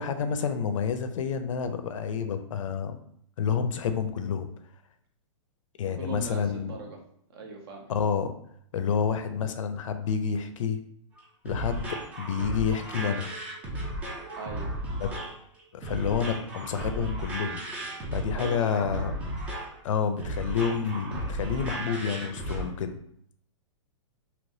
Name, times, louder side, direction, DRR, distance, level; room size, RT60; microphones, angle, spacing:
voice 1, 0.0-3.0 3.4-4.5 5.8-6.8 7.9-8.3 8.7-10.8 11.4-13.3 15.0-15.2 15.7-17.6 18.1-19.1 19.8-22.9, left 6 dB, 70° left, 9 dB, 0.5 m, -29 dB
voice 2, 5.8-7.0 7.3-7.8 14.4-14.7 18.3-19.1, right 3 dB, 45° right, 2 dB, 0.8 m, -40 dB
sound 1, 11.2-22.7, right 1 dB, 10° right, 0.3 m, -35 dB
3.3 x 2.9 x 2.6 m, 0.69 s
hypercardioid pair, 160°, 17 cm